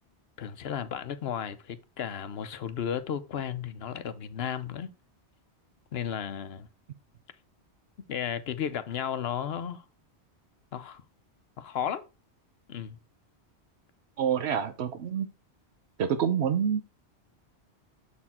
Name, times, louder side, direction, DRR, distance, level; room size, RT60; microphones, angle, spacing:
voice 1, 0.4-4.9 5.9-6.7 8.1-9.8 10.7-11.0 11.6-12.0 12.7-13.0, left 8 dB, 65° left, 0.9 m, -34 dB
voice 2, 14.2-15.3 16.0-16.8, right 8 dB, 75° right, 0.9 m, -27 dB
7.2 x 4.3 x 4.2 m
omnidirectional pair, 1.1 m